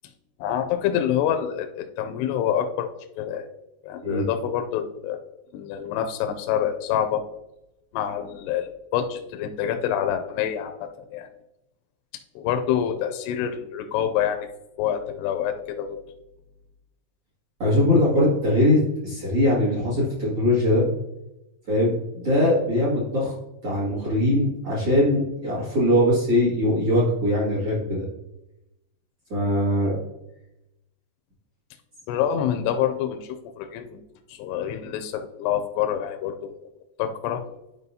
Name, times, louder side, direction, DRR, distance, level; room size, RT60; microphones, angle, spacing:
voice 1, 0.4-2.9 3.2-3.5 3.8-5.2 5.5-7.2 7.9-11.3 12.4-14.5 14.8-16.0 32.1-34.0 34.3-36.5 37.0-37.4, left 9 dB, 80° left, 6 dB, 2.5 m, -26 dB
voice 2, 17.6-20.8 21.7-23.3 23.6-28.0 29.3-30.0, left 1 dB, 45° right, -6 dB, 2.2 m, -21 dB
11.0 x 5.2 x 2.7 m, 0.91 s
omnidirectional pair, 5.1 m